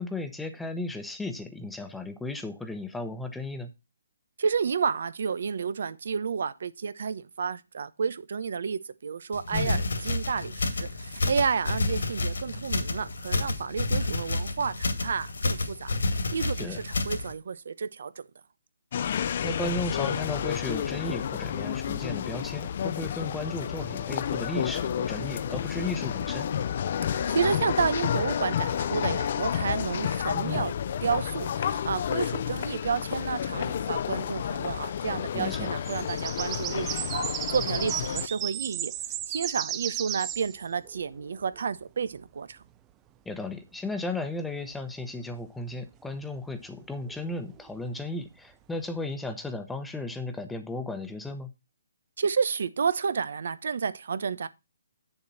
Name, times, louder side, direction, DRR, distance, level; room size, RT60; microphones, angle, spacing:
voice 1, 0.0-3.7 9.5-9.8 16.6-16.8 19.4-26.5 30.3-30.7 35.3-35.7 43.2-51.5, left 2 dB, 5° left, 1.0 m, -35 dB
voice 2, 4.4-16.0 16.3-18.1 27.1-30.7 31.0-37.2 37.5-38.9 39.3-42.6 52.2-54.5, right 6 dB, 65° right, 1.0 m, -31 dB
sound 1, 9.3-17.3, left 2 dB, 80° left, 2.3 m, -30 dB
sound 2, 18.9-38.3, left 9 dB, 45° left, 0.7 m, -30 dB
sound 3, 35.6-41.6 46.8-47.7, right 12 dB, 15° right, 0.6 m, -35 dB
9.0 x 7.1 x 4.2 m
hypercardioid pair, 155°, 0 cm